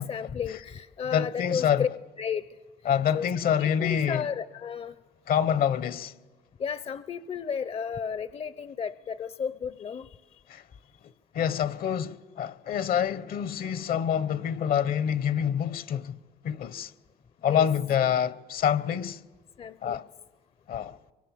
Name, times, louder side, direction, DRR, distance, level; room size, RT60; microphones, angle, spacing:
voice 1, 0.0-1.9 2.2-2.4 3.1-3.3 3.6-5.0 6.6-10.2 17.5-17.7 19.6-20.0, left 7 dB, 35° left, 0.7 m, -33 dB
voice 2, 1.1-1.8 2.8-4.3 5.3-6.1 10.5-10.6 11.3-16.2 16.4-16.9 17.4-19.2 19.8-20.0 20.7-21.0, left 9 dB, 60° left, 1.0 m, -26 dB
24.5 x 24.0 x 7.6 m
cardioid pair, 110°, 17 cm